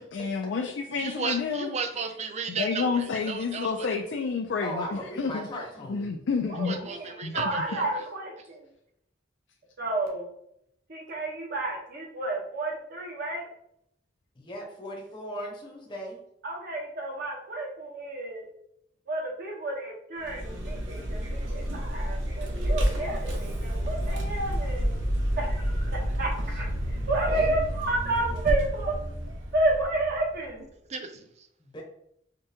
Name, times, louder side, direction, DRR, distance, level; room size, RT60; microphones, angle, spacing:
voice 1, 0.1-1.7 2.5-5.5 5.9-6.8 7.2-7.4, left 5 dB, 70° left, 2 dB, 0.4 m, -29 dB
voice 2, 0.9-3.9 6.6-8.0 30.9-31.5, right 5 dB, 35° right, 7 dB, 0.4 m, -35 dB
voice 3, 4.6-6.1 14.4-16.2 27.2-27.7 31.6-31.8, equal, 25° left, -2 dB, 0.7 m, -37 dB
voice 4, 6.6-8.6 9.8-10.2 10.9-13.5 16.4-18.5 19.1-24.9 25.4-29.0 29.5-30.7, right 2 dB, 55° right, -1 dB, 0.8 m, -31 dB
Vehicle, 20.2-30.5, equal, 80° right, 0.9 m, -30 dB
5.1 x 2.2 x 2.7 m, 0.74 s
head